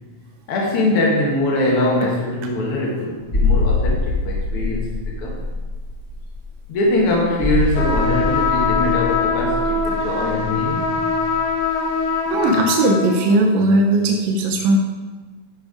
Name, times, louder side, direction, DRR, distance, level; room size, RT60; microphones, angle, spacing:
voice 1, 0.5-5.4 6.7-11.0, left 1 dB, 65° left, -2 dB, 1.5 m, -22 dB
sound 1, 3.3-11.7 12.0-12.1, left 3 dB, 40° left, 0.9 m, -24 dB
sound 2, 7.7-13.2, left 4 dB, 80° left, 3.0 m, -22 dB
voice 2, 12.3-14.8, right 2 dB, 80° right, 1 dB, 2.5 m, -17 dB
12.5 x 4.1 x 4.9 m, 1.4 s
omnidirectional pair, 3.9 m